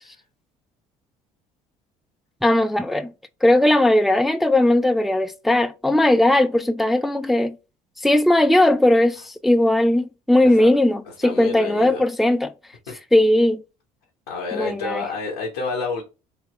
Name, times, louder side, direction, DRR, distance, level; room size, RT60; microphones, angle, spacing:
voice 1, 2.4-3.1 3.4-7.5 8.0-12.5 13.1-13.6 14.5-15.1, left 1 dB, ahead, 0.3 m, -18 dB
voice 2, 11.2-12.0 12.9-13.0 14.3-16.0, left 4 dB, 90° left, 0.9 m, -29 dB
3.3 x 2.8 x 2.9 m
hypercardioid pair, 65°, 19 cm